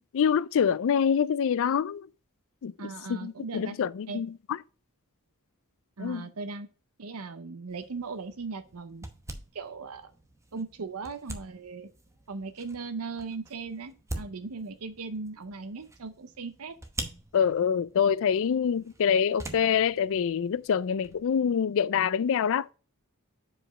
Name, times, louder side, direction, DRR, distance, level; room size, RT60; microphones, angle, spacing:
voice 1, 0.1-2.1 2.6-4.3 6.0-6.3 17.3-22.7, left 7 dB, 60° left, 0.4 m, -26 dB
voice 2, 2.8-3.8 4.1-4.2 6.0-6.7 7.0-9.1 9.5-10.1 10.5-11.9 12.3-16.8, right 4 dB, 70° right, 0.7 m, -38 dB
sound 1, 7.7-21.2, right 1 dB, 15° right, 0.9 m, -45 dB
5.0 x 4.9 x 5.4 m
head